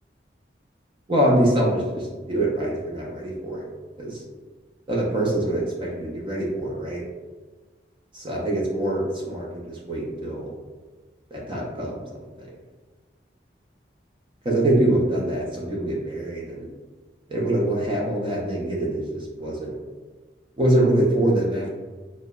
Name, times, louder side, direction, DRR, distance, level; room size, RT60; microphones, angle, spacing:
voice 1, 1.1-3.6 4.0-4.2 4.9-7.0 8.1-10.5 11.3-12.0 14.4-16.7 17.3-19.7 20.6-21.7, right 1 dB, 25° right, -3 dB, 0.4 m, -24 dB
2.7 x 2.0 x 2.2 m, 1.3 s
head